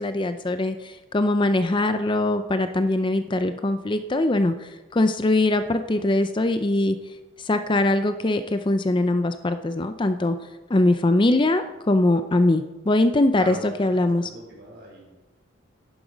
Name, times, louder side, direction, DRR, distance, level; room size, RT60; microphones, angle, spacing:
voice 1, 0.0-7.0 7.4-10.4 10.7-14.3, left 2 dB, 25° left, 9 dB, 0.4 m, -22 dB
voice 2, 13.4-15.1, right 1 dB, 55° right, -2 dB, 4.6 m, -40 dB
11.0 x 10.5 x 5.1 m, 1.1 s
head